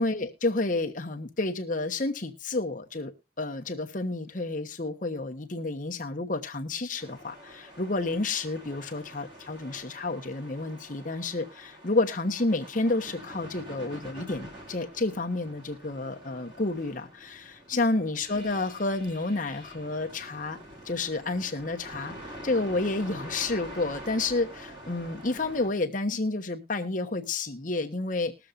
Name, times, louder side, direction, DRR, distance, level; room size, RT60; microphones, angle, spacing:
voice 1, 0.0-20.6 20.8-28.3, left 2 dB, 45° left, 4 dB, 1.1 m, -30 dB
sound 1, 7.0-25.7, right 1 dB, 25° right, 2.5 m, -46 dB
21.0 x 7.0 x 2.5 m, 0.29 s
head